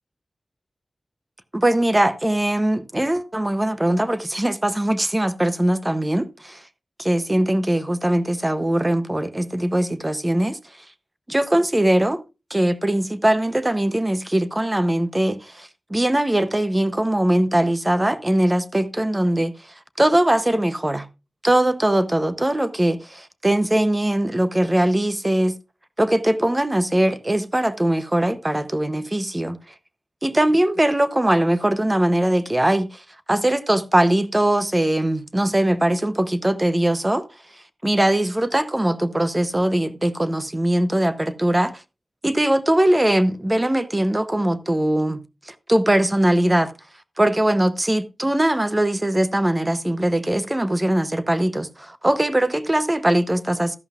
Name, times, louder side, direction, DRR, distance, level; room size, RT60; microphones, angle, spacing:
voice 1, 1.5-6.6 7.0-10.6 11.3-12.2 12.5-19.5 20.0-21.1 21.4-25.6 26.0-29.6 30.2-32.9 33.3-37.2 37.8-41.7 42.2-46.7 47.2-53.8, right 1 dB, 20° right, 0.7 m, -21 dB
13.0 x 11.0 x 2.4 m
wide cardioid pair, 95°, 0 cm